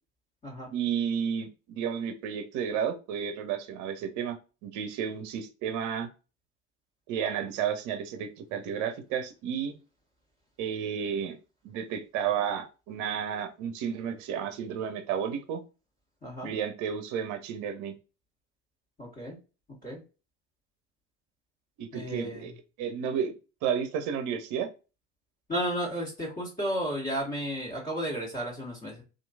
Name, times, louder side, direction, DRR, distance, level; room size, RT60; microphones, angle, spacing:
voice 1, 0.7-6.1 7.1-9.8 10.6-11.4 11.6-15.6 16.4-17.9 21.8-22.5 22.8-23.3 23.6-24.7, right 8 dB, 55° right, 8 dB, 0.7 m, -32 dB
voice 2, 16.2-16.5 19.0-19.4 19.8-20.0 21.9-22.5 25.5-29.0, equal, 25° left, -6 dB, 1.5 m, -33 dB
2.9 x 2.5 x 2.3 m, 0.32 s
hypercardioid pair, 70°, 36 cm